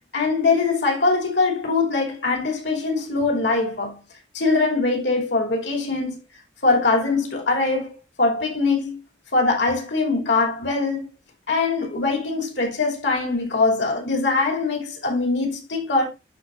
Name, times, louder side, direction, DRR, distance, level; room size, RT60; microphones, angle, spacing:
voice 1, 0.1-4.0 4.3-6.2 6.6-7.9 8.2-9.0 9.3-11.1 11.5-16.1, left 3 dB, 70° left, 2.9 m, -22 dB
12.0 x 4.2 x 2.5 m
head